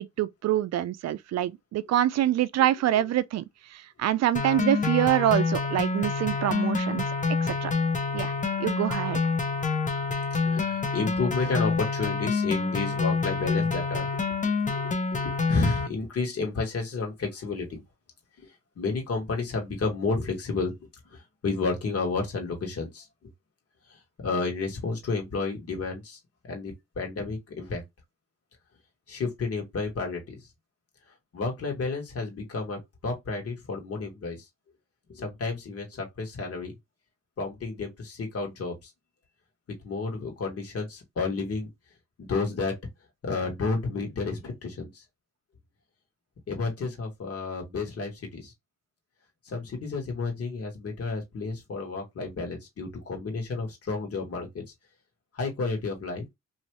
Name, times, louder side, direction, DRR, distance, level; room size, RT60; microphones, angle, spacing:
voice 1, 0.0-7.0 7.4-7.7 8.1-8.3 8.6-9.2, right 12 dB, 60° right, 0.4 m, -26 dB
sound 1, 4.3-15.9, left 4 dB, 25° left, 0.7 m, -27 dB
voice 2, 10.4-17.8 18.4-20.8 21.1-23.3 23.9-26.2 26.5-27.8 29.1-30.4 31.3-34.5 35.1-36.7 37.4-38.9 39.8-41.7 42.2-42.7 43.2-45.0 46.5-48.5 49.4-54.6 55.3-56.3, left 4 dB, 50° left, 1.8 m, -31 dB
3.1 x 2.7 x 3.0 m
cardioid pair, 90°, 30 cm